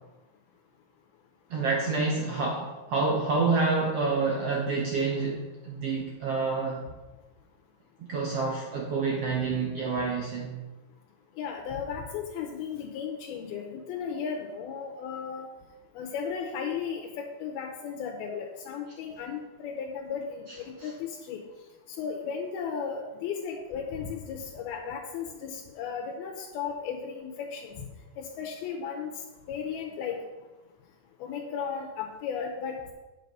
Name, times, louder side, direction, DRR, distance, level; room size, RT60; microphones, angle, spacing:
voice 1, 1.5-6.8 8.1-10.6 20.8-20.9, right 4 dB, 75° right, -1 dB, 1.4 m, -28 dB
voice 2, 11.4-15.5 16.0-20.9 21.3-21.4 22.0-27.7 28.2-29.1 29.5-30.2 31.2-32.9, left 6 dB, 80° left, 2 dB, 2.7 m, -35 dB
8.3 x 7.7 x 5.4 m, 1.1 s
omnidirectional pair, 4.4 m